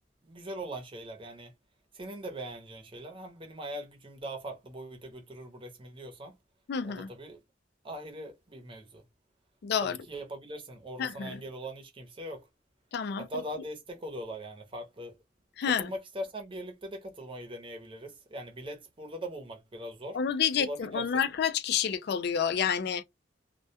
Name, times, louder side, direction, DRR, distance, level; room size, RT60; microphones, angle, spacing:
voice 1, 0.2-1.5 1.9-6.3 6.8-7.4 7.8-9.0 9.8-12.5 13.2-15.2 15.8-20.2 20.6-21.2, right 1 dB, 25° right, 0.7 m, -41 dB
voice 2, 6.7-7.1 9.6-10.0 11.0-11.4 12.9-13.3 15.6-15.9 20.1-23.0, left 7 dB, 55° left, 0.3 m, -29 dB
2.2 x 2.1 x 2.7 m
head